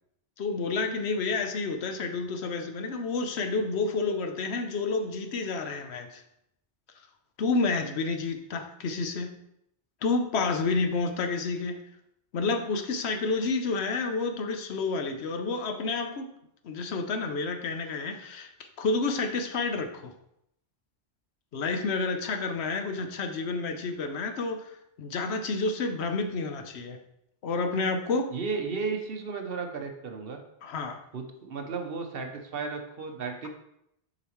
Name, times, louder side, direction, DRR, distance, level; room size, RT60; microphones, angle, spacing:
voice 1, 0.4-6.2 7.4-9.3 10.0-11.8 12.3-16.3 16.6-18.5 18.8-20.1 21.5-24.7 25.0-27.0 27.4-28.3 30.6-31.0, left 3 dB, 75° left, 6 dB, 1.0 m, -29 dB
voice 2, 28.3-30.4 31.1-33.5, right 4 dB, 60° right, 4 dB, 1.0 m, -34 dB
6.7 x 4.9 x 3.1 m, 0.78 s
omnidirectional pair, 1.1 m